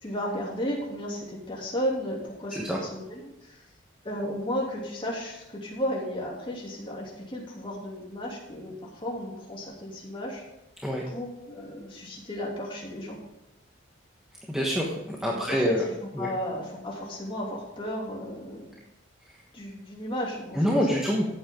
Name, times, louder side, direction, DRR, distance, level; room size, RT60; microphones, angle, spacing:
voice 1, 0.0-3.6 4.0-10.4 11.1-13.2 15.3-18.8 19.5-20.7, equal, 25° left, -3 dB, 3.0 m, -34 dB
voice 2, 14.5-14.9 15.2-15.8 16.2-16.3 20.5-21.3, equal, 5° right, -3 dB, 1.3 m, -26 dB
14.0 x 8.8 x 3.8 m, 0.91 s
head